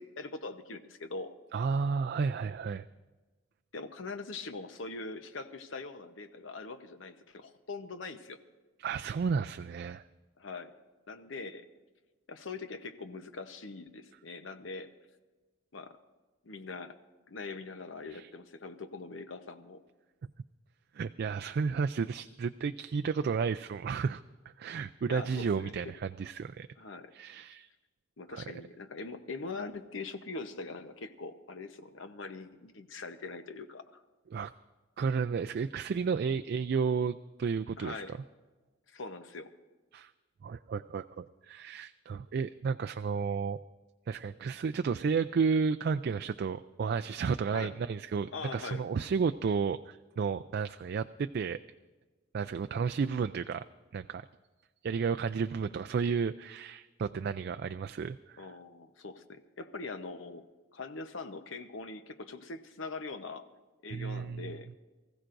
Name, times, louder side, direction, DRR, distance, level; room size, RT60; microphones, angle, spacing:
voice 1, 0.0-1.4 3.7-8.4 10.4-10.7 11.1-11.7 12.3-14.9 15.7-16.0 16.4-17.0 17.3-19.8 25.1-25.7 26.8-27.1 28.2-34.0 37.8-38.2 38.9-39.5 47.5-47.7 48.3-48.8 58.4-60.4 60.7-63.5 63.8-64.7, left 3 dB, 80° left, 9 dB, 0.9 m, -42 dB
voice 2, 1.5-2.9 8.8-10.0 18.1-18.3 20.9-24.2 24.6-26.7 27.1-27.7 28.3-28.4 34.3-34.5 35.0-38.0 39.9-40.1 40.4-43.6 44.1-51.6 52.3-53.6 53.9-54.3 54.8-58.5 63.9-64.5, right 5 dB, 55° right, 9 dB, 0.3 m, -32 dB
24.5 x 15.0 x 2.6 m, 1.2 s
head